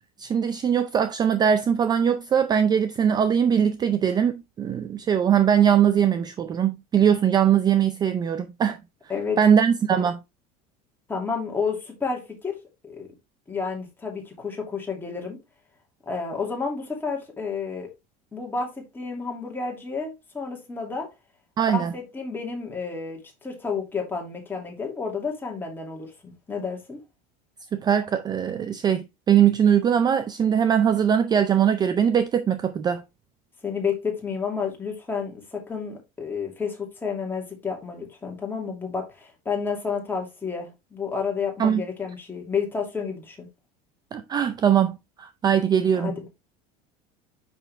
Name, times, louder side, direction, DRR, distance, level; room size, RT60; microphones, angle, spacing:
voice 1, 0.2-8.8 9.4-10.2 21.6-21.9 27.7-33.0 41.6-41.8 44.1-46.1, right 8 dB, 20° right, 0.4 m, -21 dB
voice 2, 11.1-12.6 12.8-13.1 13.5-15.4 16.1-17.9 18.3-21.1 21.7-27.0 33.6-43.5 45.9-46.3, left 5 dB, 10° left, 2.5 m, -30 dB
6.2 x 5.4 x 3.4 m
supercardioid pair, 135°, 18 cm